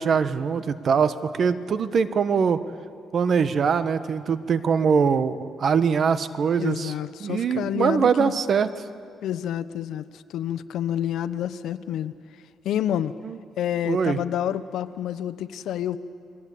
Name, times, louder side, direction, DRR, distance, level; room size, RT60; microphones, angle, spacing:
voice 1, 0.0-2.6 3.1-6.9 7.2-8.7 13.2-13.4 13.8-14.2, right 6 dB, 50° right, 12 dB, 1.2 m, -22 dB
voice 2, 6.6-8.3 9.2-12.1 12.6-13.1 13.6-16.0, left 10 dB, 80° left, 14 dB, 0.9 m, -28 dB
30.0 x 21.5 x 8.5 m, 2.4 s
cardioid pair, 90°, 0 cm